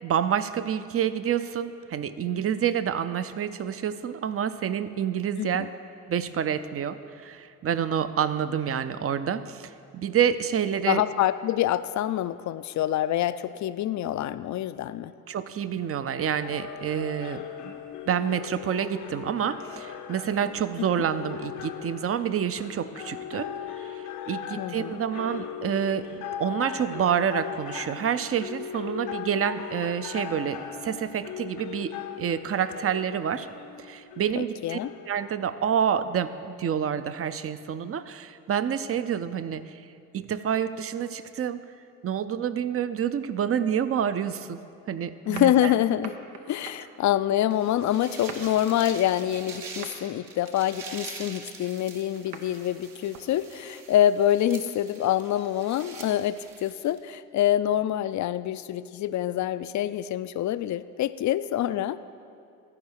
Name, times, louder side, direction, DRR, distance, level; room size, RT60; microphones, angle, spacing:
voice 1, 0.0-5.7 6.1-11.0 15.3-17.7 18.1-23.5 23.8-33.5 33.8-34.8 35.1-39.8 40.1-41.6 42.0-44.6 44.9-45.7, right 8 dB, 35° right, 13 dB, 0.5 m, -28 dB
voice 2, 5.4-5.7 10.8-15.1 24.6-25.0 34.4-34.9 45.3-46.1 46.5-62.0, left 12 dB, 50° left, 14 dB, 0.4 m, -26 dB
sound 1, 16.2-35.8, left 9 dB, 80° left, 0.9 m, -39 dB
sound 2, 45.1-47.2 47.7-48.5 49.3-49.5 49.8-50.1 50.5-50.8 51.3-52.5 52.9-53.3 53.8-53.9 56.2-56.3, right 6 dB, 80° right, 0.8 m, -43 dB
sound 3, 47.5-57.0, right 4 dB, 60° right, 1.2 m, -44 dB
13.0 x 4.8 x 6.4 m, 2.6 s
hypercardioid pair, 55°, 38 cm